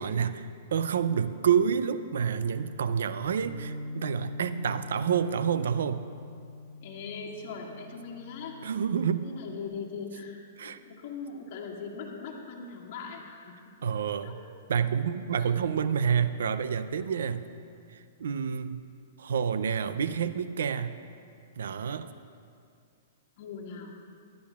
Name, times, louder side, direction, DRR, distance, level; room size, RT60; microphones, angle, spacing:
voice 1, 0.0-6.0 8.6-9.3 10.6-10.8 13.8-14.4 14.7-17.5 18.2-18.8 19.2-21.0 21.6-22.1, right 7 dB, 80° right, 12 dB, 0.5 m, -28 dB
Bass guitar, 3.4-9.7, left 1 dB, 50° right, 1.3 m, -43 dB
voice 2, 6.8-8.6 9.2-10.4 10.6-13.8 14.2-14.3 15.4-15.5 17.3-17.8 23.4-24.0, left 5 dB, 50° left, -2 dB, 1.9 m, -40 dB
17.0 x 11.5 x 2.4 m, 2.4 s
hypercardioid pair, 150°, 0 cm